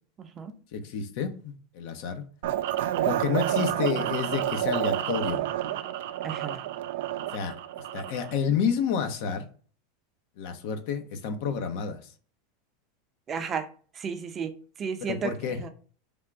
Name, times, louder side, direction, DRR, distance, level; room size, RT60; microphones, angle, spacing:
voice 1, 0.2-0.5 6.2-6.6 13.3-13.7 13.9-14.5 14.8-15.7, right 6 dB, 30° right, 0.6 m, -33 dB
voice 2, 0.7-2.2 3.0-5.4 7.3-7.5 7.9-9.5 10.4-12.0 15.0-15.6, left 7 dB, 65° left, 0.8 m, -29 dB
sound 1, 2.4-8.4, right 12 dB, 75° right, 0.4 m, -29 dB
3.5 x 2.5 x 4.5 m
supercardioid pair, 120°, 0 cm